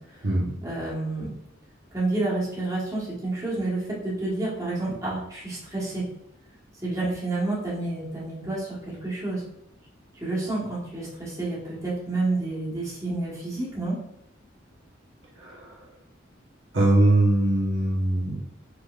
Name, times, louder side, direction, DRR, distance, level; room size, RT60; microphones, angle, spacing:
voice 1, 0.6-1.3 1.9-6.0 6.8-9.4 10.1-14.0, right 2 dB, 15° right, -7 dB, 1.4 m, -29 dB
voice 2, 16.7-18.4, right 1 dB, 65° right, -4 dB, 1.2 m, -21 dB
4.9 x 3.5 x 2.5 m, 0.82 s
head